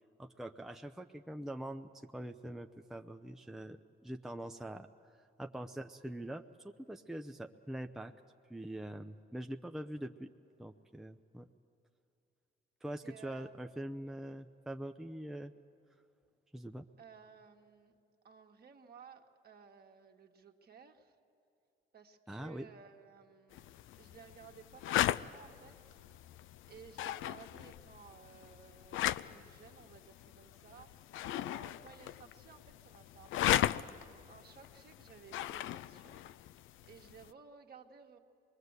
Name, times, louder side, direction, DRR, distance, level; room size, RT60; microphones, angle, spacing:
voice 1, 0.2-8.1 8.5-10.3 10.6-11.5 12.8-15.5 16.5-16.8 22.3-22.7, right 1 dB, ahead, 5 dB, 0.6 m, -44 dB
voice 2, 13.0-13.6 17.0-17.9 18.2-21.1 21.9-23.7 24.0-26.0 26.7-30.9 31.4-33.8 34.3-36.2 36.9-38.2, right 6 dB, 50° right, 3 dB, 1.7 m, -57 dB
sound 1, 23.5-37.3, left 13 dB, 80° left, 0.5 m, -38 dB
24.5 x 21.5 x 8.2 m, 2.7 s
cardioid pair, 90°, 20 cm